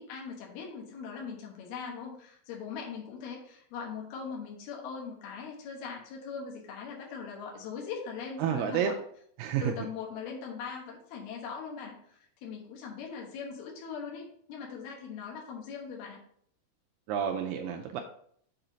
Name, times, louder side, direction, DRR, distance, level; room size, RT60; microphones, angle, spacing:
voice 1, 0.0-8.9 9.6-16.2, left 6 dB, 80° left, -1 dB, 3.2 m, -40 dB
voice 2, 8.4-8.9 9.4-9.9 17.1-18.0, right 8 dB, 85° right, 3 dB, 1.9 m, -30 dB
7.1 x 4.3 x 3.9 m, 0.64 s
omnidirectional pair, 4.5 m